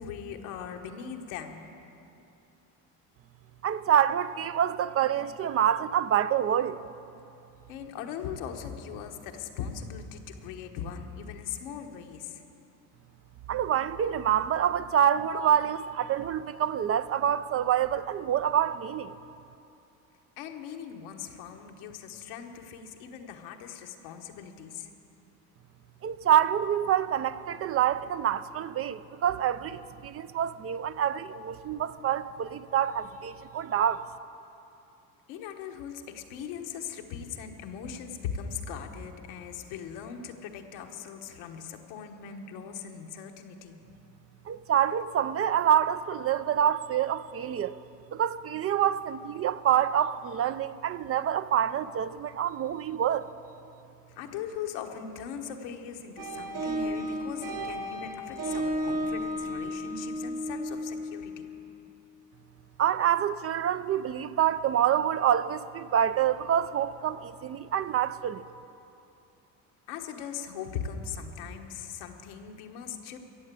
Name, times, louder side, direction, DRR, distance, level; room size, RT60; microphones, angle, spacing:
voice 1, 0.0-1.7 7.7-12.4 20.4-24.9 35.3-43.8 54.1-61.5 69.9-73.2, left 7 dB, 90° left, 1.2 m, -39 dB
voice 2, 3.6-6.8 13.5-19.1 26.0-34.0 44.5-47.8 48.1-53.3 62.8-68.4, right 10 dB, 40° right, 0.4 m, -26 dB
sound 1, 56.2-61.7, equal, 60° right, 1.6 m, -33 dB
15.0 x 7.4 x 8.2 m
cardioid pair, 95°, 37 cm